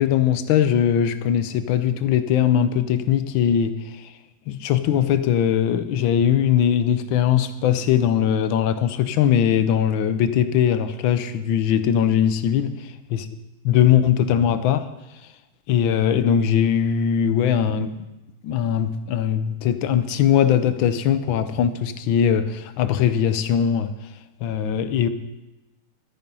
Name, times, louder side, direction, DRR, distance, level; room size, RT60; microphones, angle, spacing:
voice 1, 0.0-4.1 4.5-13.2 13.6-14.9 15.7-17.9 18.4-23.9 24.4-25.1, left 9 dB, 75° left, 12 dB, 1.4 m, -20 dB
12.5 x 9.4 x 5.4 m, 1.0 s
omnidirectional pair, 2.3 m